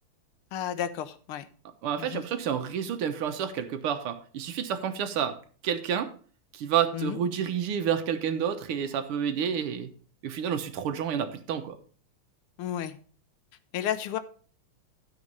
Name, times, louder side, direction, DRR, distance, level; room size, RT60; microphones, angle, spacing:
voice 1, 0.5-1.5 2.0-2.2 6.9-7.2 12.6-13.0 13.7-14.2, left 10 dB, 85° left, 12 dB, 1.7 m, -32 dB
voice 2, 1.8-5.4 5.6-6.1 6.5-9.9 10.2-11.8, right 8 dB, 85° right, 7 dB, 2.0 m, -29 dB
13.0 x 5.3 x 5.3 m, 0.43 s
omnidirectional pair, 2.3 m